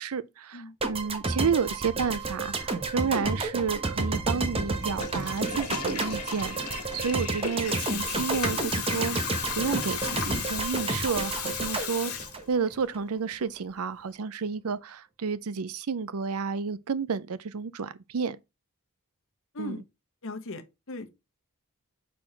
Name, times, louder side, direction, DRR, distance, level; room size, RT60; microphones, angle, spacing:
voice 1, 0.0-9.2 9.6-12.1 12.5-18.4 19.6-19.7, right 5 dB, 75° right, 0.5 m, -31 dB
sound 1, 0.8-13.0, right 3 dB, 25° right, 1.1 m, -31 dB
Water tap faucet / Toilet flush, 4.7-12.7, left 7 dB, 80° left, 1.5 m, -35 dB
voice 2, 20.2-21.1, left 2 dB, 60° left, 1.1 m, -38 dB
5.7 x 4.2 x 4.4 m
head